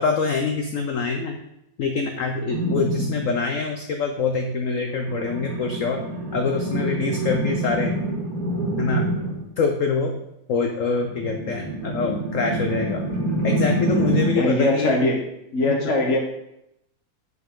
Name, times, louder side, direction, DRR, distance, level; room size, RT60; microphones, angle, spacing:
voice 1, 0.0-1.4 1.8-6.0 6.3-7.9 8.8-9.1 9.6-10.1 10.5-13.1 13.4-15.0 15.6-15.9, left 4 dB, 70° left, 4 dB, 0.7 m, -25 dB
sound 1, 2.5-3.3 4.9-9.5 11.0-14.5, right 1 dB, 50° right, 2.3 m, -26 dB
voice 2, 14.3-15.2 15.5-16.2, left 2 dB, 45° left, 0 dB, 1.3 m, -21 dB
7.9 x 4.7 x 3.7 m, 0.82 s
omnidirectional pair, 2.1 m